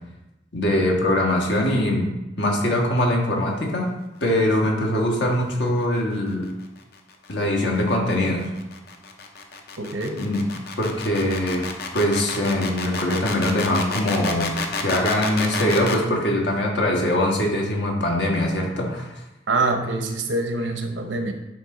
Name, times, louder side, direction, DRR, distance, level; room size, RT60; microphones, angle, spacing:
voice 1, 0.5-3.9 4.2-6.5 7.3-8.5 10.2-10.4 10.8-11.6 11.9-19.1, left 1 dB, 75° left, 0 dB, 1.4 m, -22 dB
sound 1, 6.8-16.1, left 4 dB, 55° left, 0.7 m, -30 dB
voice 2, 9.8-10.2 19.5-21.3, right 2 dB, 85° right, 5 dB, 0.8 m, -25 dB
10.0 x 3.4 x 3.8 m, 0.98 s
head